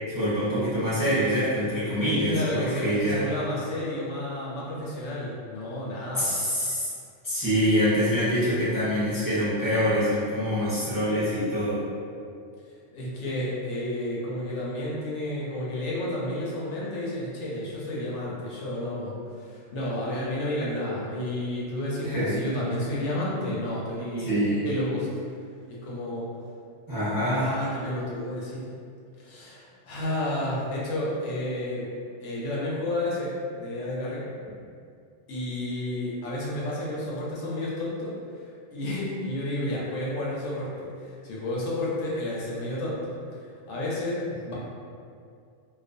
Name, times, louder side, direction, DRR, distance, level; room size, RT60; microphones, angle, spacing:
voice 1, 0.1-3.3 6.1-6.9 7.2-11.8 22.0-22.4 24.2-24.7 26.9-27.5, equal, 25° right, -12 dB, 0.5 m, -25 dB
voice 2, 2.3-6.4 12.9-25.1 25.7-26.3 27.3-28.7 29.2-31.9 32.2-33.3 33.6-34.3 35.3-43.4 43.7-44.5, left 1 dB, 70° left, -6 dB, 0.9 m, -31 dB
2.3 x 2.1 x 2.5 m, 2.3 s
omnidirectional pair, 1.3 m